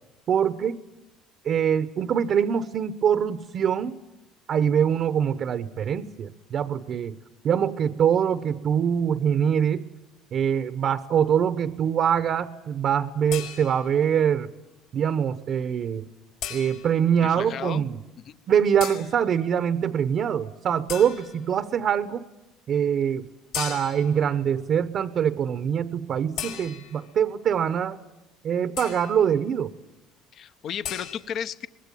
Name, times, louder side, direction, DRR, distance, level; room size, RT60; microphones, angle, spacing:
voice 1, 0.3-0.8 1.4-4.0 4.5-7.2 7.4-9.9 10.3-14.5 14.9-16.1 16.5-18.0 18.5-22.2 22.7-23.2 23.5-28.0 28.4-29.7, right 8 dB, 50° right, 11 dB, 0.9 m, -24 dB
sound 1, 13.3-14.0 16.4-17.0 18.8-19.2 20.9-21.4 23.5-24.2 26.4-27.1 28.8-29.2 30.8-31.1, left 9 dB, 85° left, 4.6 m, -36 dB
voice 2, 17.2-17.8 18.2-18.4 30.3-31.7, left 9 dB, 50° left, 14 dB, 0.9 m, -34 dB
23.5 x 20.5 x 9.1 m, 1.0 s
cardioid pair, 120°, 0 cm